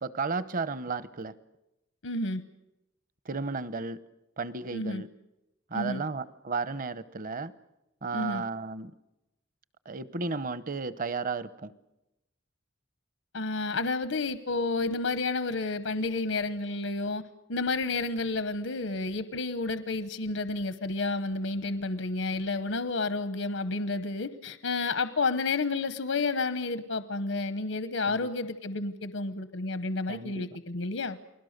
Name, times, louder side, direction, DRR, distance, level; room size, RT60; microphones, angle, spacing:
voice 1, 0.0-1.3 3.2-4.0 4.4-5.1 5.7-7.5 8.0-8.9 9.8-11.7 28.1-28.3 30.1-30.4, right 4 dB, 45° right, 16 dB, 0.8 m, -33 dB
voice 2, 2.0-2.4 4.7-5.0 5.7-6.0 8.1-8.4 13.3-17.2 17.5-31.2, left 3 dB, 90° left, 12 dB, 1.0 m, -30 dB
29.5 x 20.5 x 6.6 m, 0.92 s
head